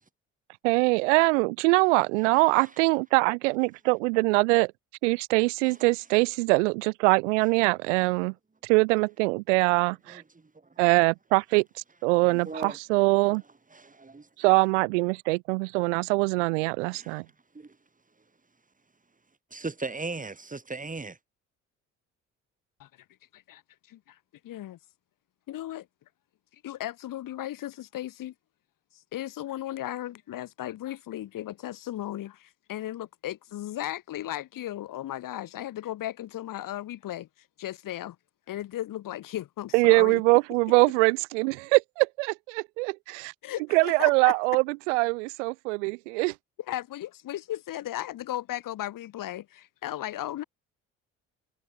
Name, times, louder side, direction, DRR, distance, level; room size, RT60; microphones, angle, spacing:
voice 1, 0.6-4.7 5.0-8.3 8.6-10.2 10.8-11.6 12.0-13.4 14.4-17.2 39.7-43.3 43.7-46.3, right 27 dB, 80° right, 0.8 m, -23 dB
voice 2, 12.3-12.8 13.3-13.4 13.7-14.3 16.9-17.2 17.5-17.7 19.5-21.2, right 3 dB, 20° right, 4.5 m, -37 dB
voice 3, 24.4-24.8 25.5-25.9 26.6-28.3 28.9-37.3 37.6-38.2 38.5-40.2 43.4-44.3 46.7-50.4, left 13 dB, 65° left, 7.2 m, -36 dB
hypercardioid pair, 55°, 35 cm